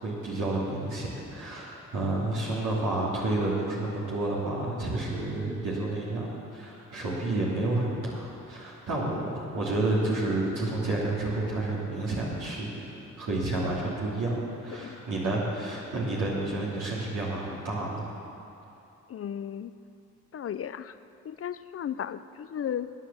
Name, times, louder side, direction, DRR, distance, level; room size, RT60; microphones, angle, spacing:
voice 1, 0.0-18.0, right 2 dB, 65° right, -6 dB, 2.8 m, -30 dB
voice 2, 19.1-19.7 20.3-20.9 21.2-22.9, left 9 dB, 45° left, 13 dB, 0.5 m, -35 dB
11.0 x 9.6 x 7.2 m, 2.8 s
supercardioid pair, 50°, 33 cm